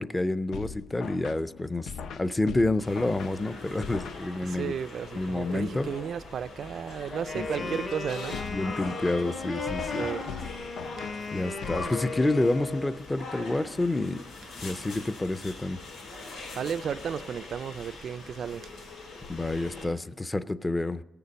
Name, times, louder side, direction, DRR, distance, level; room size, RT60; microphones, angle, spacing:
voice 1, 0.0-4.7 5.1-5.9 7.3-7.8 8.5-10.1 11.3-14.2 14.6-15.8 19.3-21.0, left 2 dB, 15° left, 0.5 m, -29 dB
Tri Hop Rhythme, 0.5-4.7 8.3-12.5, left 6 dB, 70° left, 0.6 m, -41 dB
sound 1, 2.8-19.9, left 3 dB, 90° left, 4.7 m, -42 dB
voice 2, 4.4-8.4 10.0-10.3 16.3-18.7, right 7 dB, 60° right, 0.3 m, -34 dB
Wind instrument woodwind instrument, 7.1-13.0, left 3 dB, 45° left, 1.3 m, -37 dB
18.0 x 6.9 x 5.2 m
cardioid pair, 130°, 0 cm